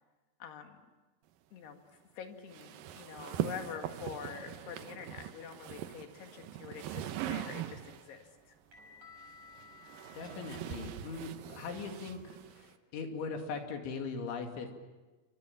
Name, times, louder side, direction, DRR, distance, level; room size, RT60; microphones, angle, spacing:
voice 1, 0.4-0.9 1.5-1.8 2.2-8.3, left 7 dB, 65° left, 5 dB, 4.0 m, -46 dB
sound 1, 2.5-8.1 9.2-12.7, right 11 dB, 75° right, 2.1 m, -41 dB
sound 2, 7.7-12.4, left 4 dB, 40° right, 7.0 m, -58 dB
voice 2, 10.1-12.2 12.5-14.7, left 4 dB, 80° left, 4 dB, 4.9 m, -40 dB
29.0 x 25.0 x 7.3 m, 1.2 s
omnidirectional pair, 5.3 m